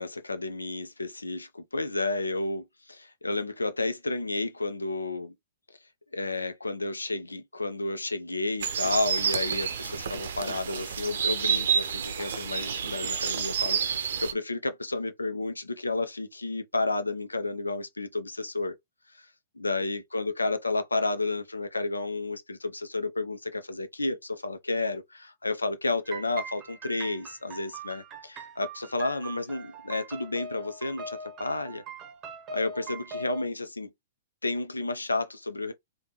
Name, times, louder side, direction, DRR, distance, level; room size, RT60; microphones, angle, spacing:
voice 1, 0.0-5.3 6.1-18.8 19.2-19.3 19.6-31.8 32.5-33.9 34.4-35.7, left 2 dB, 90° left, 0.6 m, -31 dB
sound 1, 8.6-14.3, right 7 dB, 65° right, 0.6 m, -29 dB
sound 2, 26.1-33.5, right 3 dB, 30° right, 0.8 m, -42 dB
3.4 x 2.3 x 3.0 m
figure-of-eight pair, 110°, 0 cm